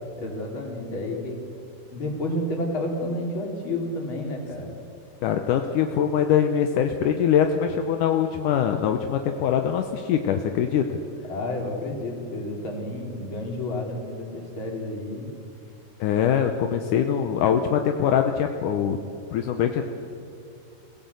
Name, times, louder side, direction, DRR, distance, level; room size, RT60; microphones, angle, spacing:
voice 1, 0.2-1.4 1.9-4.7 11.3-15.3, left 1 dB, 35° left, 0 dB, 3.7 m, -30 dB
voice 2, 5.2-10.9 16.0-19.0 19.3-19.8, left 8 dB, 75° left, 5 dB, 2.0 m, -23 dB
25.5 x 17.0 x 8.3 m, 2.5 s
omnidirectional pair, 4.6 m